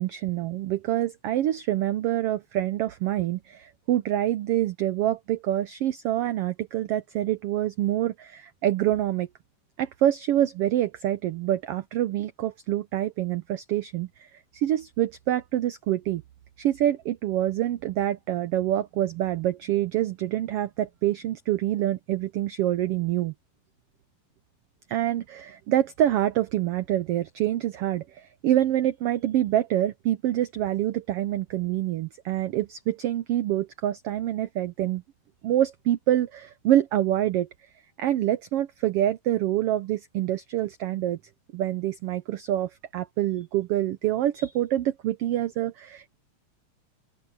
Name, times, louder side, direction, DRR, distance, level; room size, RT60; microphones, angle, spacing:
voice 1, 0.0-9.3 9.8-16.2 16.6-23.3 24.9-35.0 35.4-37.5 38.0-41.2 41.5-46.2, right 13 dB, 85° right, 1.3 m, -26 dB
open air
omnidirectional pair, 3.5 m